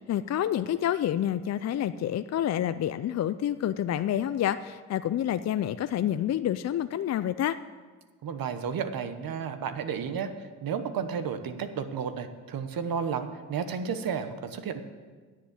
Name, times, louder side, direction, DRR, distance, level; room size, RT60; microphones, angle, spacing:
voice 1, 0.0-7.6, left 11 dB, 45° left, 12 dB, 0.4 m, -28 dB
voice 2, 8.2-10.3 10.6-14.8, right 6 dB, 60° right, 9 dB, 1.1 m, -32 dB
10.0 x 7.7 x 8.3 m, 1.4 s
cardioid pair, 75°, 39 cm